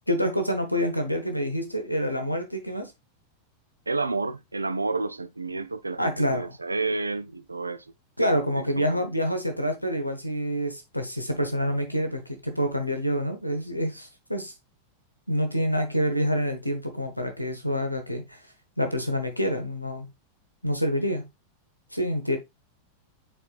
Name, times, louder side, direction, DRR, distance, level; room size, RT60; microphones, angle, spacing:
voice 1, 0.0-2.9 6.0-6.5 8.2-14.5 15.3-18.4 18.8-20.1 20.6-21.2 21.9-22.4, equal, 90° left, 1.0 m, -27 dB
voice 2, 3.9-7.8 8.5-9.1, right 3 dB, 80° right, 0.5 m, -30 dB
8.8 x 4.5 x 2.4 m
figure-of-eight pair, 90°, 0 cm